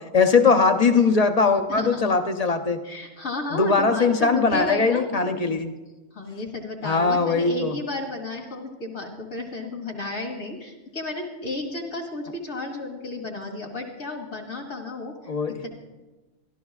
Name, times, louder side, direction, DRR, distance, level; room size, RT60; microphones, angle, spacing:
voice 1, 0.1-2.8 3.5-5.7 6.8-7.7 15.3-15.6, left 4 dB, 40° left, 6 dB, 0.6 m, -20 dB
voice 2, 1.7-2.0 2.8-5.1 6.1-15.1 15.5-15.7, left 2 dB, 65° left, 0 dB, 2.3 m, -32 dB
25.5 x 12.5 x 2.4 m, 1.1 s
omnidirectional pair, 1.5 m